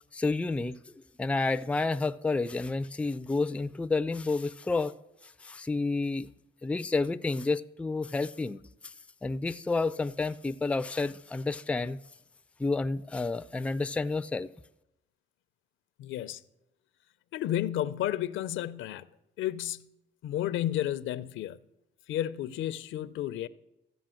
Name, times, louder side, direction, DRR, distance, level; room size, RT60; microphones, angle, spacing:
voice 1, 0.1-0.8 1.2-4.9 5.2-6.3 6.6-8.9 9.2-12.0 12.6-14.5, left 3 dB, 5° left, 0.4 m, -30 dB
voice 2, 16.0-16.4 17.3-19.0 19.4-19.9 20.2-21.6 22.1-23.5, left 12 dB, 80° left, 0.6 m, -32 dB
14.5 x 5.4 x 7.7 m
cardioid pair, 90°, 20 cm